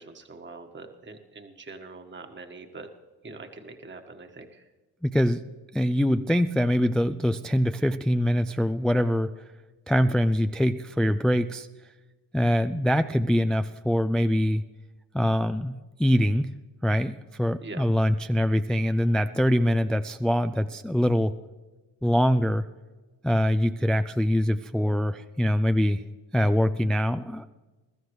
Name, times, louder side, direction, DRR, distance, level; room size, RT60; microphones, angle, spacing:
voice 1, 0.0-2.9 3.2-4.7 17.6-17.8, right 3 dB, 25° right, 5 dB, 1.5 m, -43 dB
voice 2, 5.0-5.4 5.7-9.3 9.9-11.7 12.3-14.6 15.1-16.5 16.8-21.3 22.0-22.7 23.2-26.0 26.3-27.5, equal, ahead, 10 dB, 0.4 m, -24 dB
22.0 x 13.0 x 3.2 m, 1.2 s
supercardioid pair, 60°, 48 cm